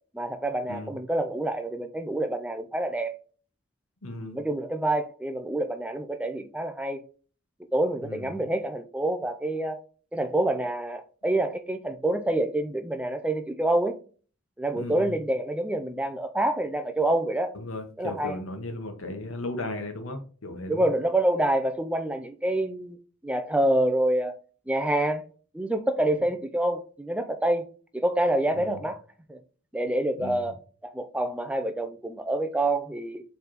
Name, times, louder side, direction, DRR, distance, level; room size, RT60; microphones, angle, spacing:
voice 1, 0.1-3.1 4.3-7.0 7.7-9.8 10.1-14.0 14.6-17.5 18.0-18.4 20.7-23.0 23.2-24.4 24.7-25.2 25.5-27.7 27.9-29.0 29.3-29.4 29.7-30.6 30.8-33.2, right 1 dB, 5° right, 0.3 m, -27 dB
voice 2, 4.0-4.4 8.0-8.4 14.8-15.2 17.5-20.9 28.5-28.8 30.2-30.5, left 2 dB, 80° left, 1.0 m, -36 dB
4.8 x 3.3 x 3.0 m
head